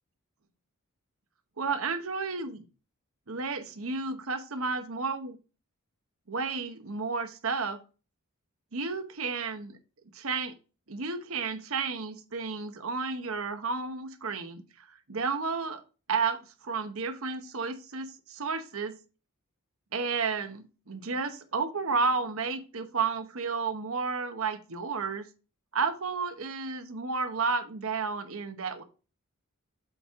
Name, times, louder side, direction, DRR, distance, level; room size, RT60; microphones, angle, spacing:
voice 1, 1.6-2.6 3.3-5.4 6.3-7.8 8.7-9.8 10.1-10.5 10.9-15.8 16.1-19.0 19.9-25.3 25.7-28.8, right 4 dB, 65° right, 1.0 m, -32 dB
7.8 x 4.5 x 3.6 m
head